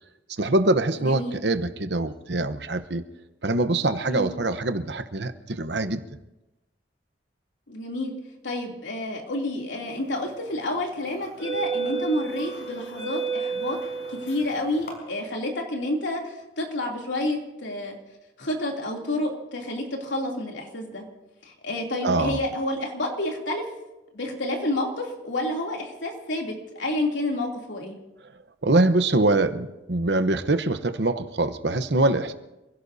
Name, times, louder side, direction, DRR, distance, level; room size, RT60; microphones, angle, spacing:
voice 1, 0.4-3.0 3.4-6.0 22.0-22.4 28.6-32.3, right 2 dB, 65° right, 10 dB, 1.0 m, -24 dB
voice 2, 1.0-1.3 4.1-4.3 7.7-8.1 8.4-13.8 14.1-17.9 18.4-21.0 21.4-23.7 24.1-28.0, left 1 dB, 85° left, 0 dB, 3.0 m, -29 dB
sound 1, 10.1-10.4 11.1-14.9, right 4 dB, 60° left, 5.2 m, -31 dB
28.0 x 16.5 x 2.8 m, 0.99 s
head